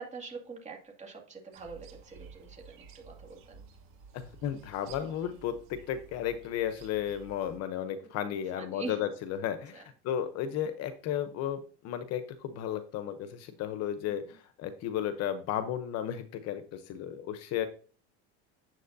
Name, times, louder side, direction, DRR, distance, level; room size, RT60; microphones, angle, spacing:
voice 1, 0.0-3.7 8.3-9.0 9.7-9.9 14.1-14.4, right 4 dB, 20° right, 1 dB, 2.1 m, -44 dB
sound 1, 1.5-7.6, right 5 dB, 65° right, 2.3 m, -53 dB
voice 2, 4.1-17.7, left 10 dB, 45° left, 11 dB, 0.8 m, -34 dB
9.3 x 7.3 x 2.6 m, 0.40 s
cardioid pair, 150°, 34 cm